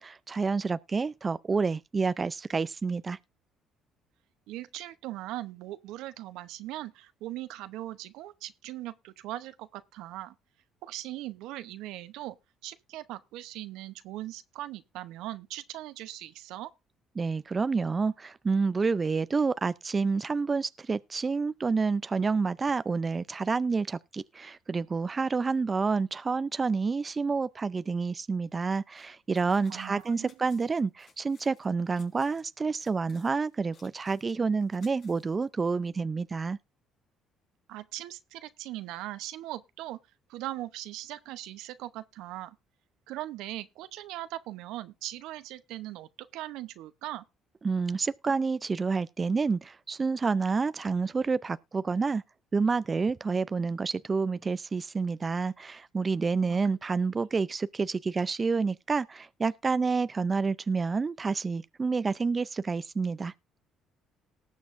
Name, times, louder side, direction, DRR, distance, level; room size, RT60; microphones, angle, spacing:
voice 1, 0.0-3.2 17.2-36.6 47.6-52.2 52.5-63.3, right 4 dB, 30° right, 0.4 m, -29 dB
voice 2, 4.5-10.3 10.8-12.4 12.6-16.7 29.7-30.3 37.7-40.0 40.3-42.6 43.1-47.2 56.5-56.6, right 15 dB, 80° right, 0.8 m, -40 dB
sound 1, 28.9-29.1 29.3-32.4 32.8-35.9, left 5 dB, 65° left, 4.3 m, -61 dB
19.0 x 7.2 x 2.6 m
supercardioid pair, 75°, 0 cm